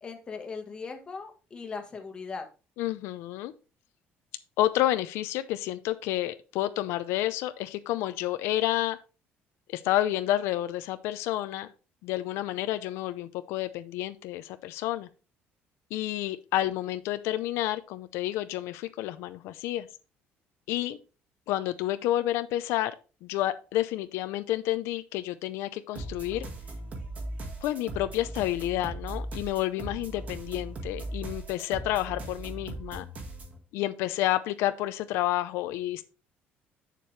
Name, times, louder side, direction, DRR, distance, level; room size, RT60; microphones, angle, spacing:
voice 1, 0.0-2.4, left 4 dB, 20° left, 3 dB, 1.4 m, -39 dB
voice 2, 2.8-3.5 4.6-9.0 9.7-11.7 12.0-15.1 15.9-19.9 20.7-21.0 21.5-22.9 23.2-26.5 27.6-33.0 33.7-36.0, left 14 dB, 90° left, 11 dB, 0.6 m, -30 dB
sound 1, 25.9-33.6, right 2 dB, 35° right, 1.8 m, -39 dB
7.5 x 6.8 x 3.2 m, 0.33 s
cardioid pair, 170°, 4 cm